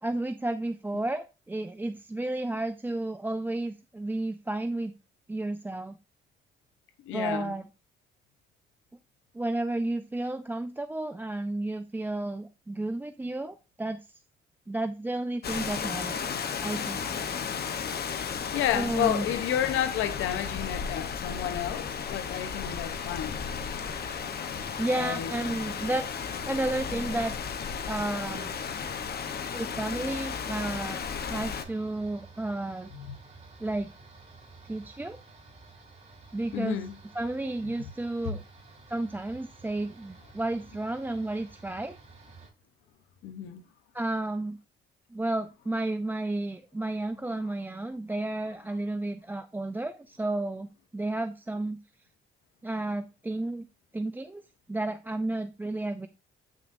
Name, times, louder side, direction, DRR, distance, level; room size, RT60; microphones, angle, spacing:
voice 1, 0.0-4.9 5.3-6.0 7.1-7.6 9.3-14.2 14.7-16.3 16.6-17.1 18.7-19.3 24.8-26.0 26.4-27.4 27.9-28.5 29.5-32.9 33.6-33.9 34.6-35.2 36.3-36.8 37.1-38.4 38.9-42.0 43.9-44.6 45.1-51.8 52.6-53.7 53.9-54.4 54.7-56.1, right 2 dB, 10° right, 0.4 m, -32 dB
voice 2, 7.0-7.6 18.2-23.5 24.9-25.3 32.9-33.1 36.5-36.9 43.2-43.6, left 10 dB, 90° left, 0.9 m, -31 dB
Rain, 15.4-31.6, left 6 dB, 50° left, 1.0 m, -34 dB
sound 1, 22.6-42.5, right 3 dB, 35° right, 3.9 m, -52 dB
8.4 x 6.2 x 2.6 m
cardioid pair, 90°, 20 cm